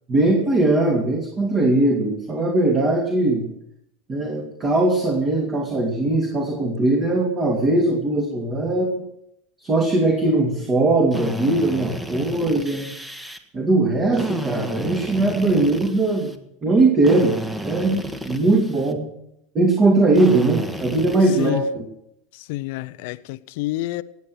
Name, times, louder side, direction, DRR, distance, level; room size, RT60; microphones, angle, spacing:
voice 1, 0.1-3.4 4.1-9.1 9.6-12.9 13.5-17.4 17.6-19.0 19.5-21.8, right 2 dB, 30° right, 2.9 m, -20 dB
Drill, 11.1-13.4 14.1-16.4 17.0-18.9 20.1-21.5, equal, 10° right, 1.4 m, -32 dB
voice 2, 22.3-24.0, left 17 dB, 70° left, 0.5 m, -28 dB
18.5 x 8.3 x 6.2 m
hypercardioid pair, 100°, 0 cm